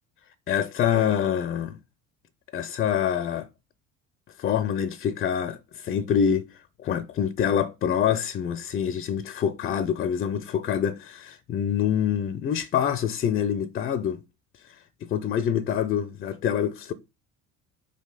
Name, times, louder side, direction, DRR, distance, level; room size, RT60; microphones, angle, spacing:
voice 1, 0.5-1.8 2.5-3.5 4.4-14.2 14.7-16.9, left 8 dB, 25° left, 0.4 m, -26 dB
5.0 x 5.0 x 3.9 m
figure-of-eight pair, 60°, 39 cm